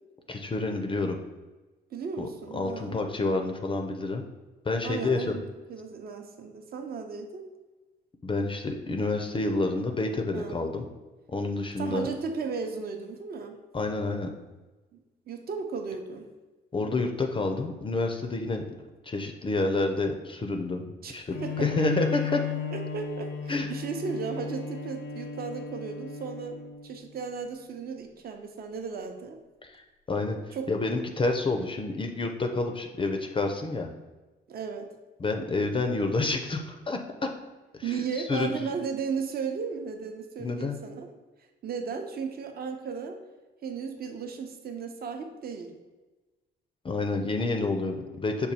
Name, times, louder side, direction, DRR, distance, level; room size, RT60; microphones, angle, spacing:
voice 1, 0.3-1.2 2.2-2.3 2.5-4.2 4.6-5.3 8.2-10.8 11.3-12.1 13.7-14.3 16.7-18.6 19.0-22.4 23.5-23.7 29.6-29.8 30.1-33.9 35.2-37.3 37.8-38.7 40.4-40.8 46.8-48.5, left 2 dB, 25° left, 4 dB, 0.4 m, -29 dB
voice 2, 1.9-3.0 4.8-7.5 10.3-10.7 11.8-13.6 15.3-16.3 21.0-21.1 21.4-21.7 22.7-29.4 30.5-30.7 34.5-34.9 37.8-41.1 41.6-43.2 43.6-45.7, right 5 dB, 50° right, 4 dB, 0.7 m, -35 dB
Bowed string instrument, 21.3-26.9, left 7 dB, 85° left, 0.6 m, -35 dB
5.2 x 2.3 x 4.2 m, 1.2 s
cardioid pair, 90°, 20 cm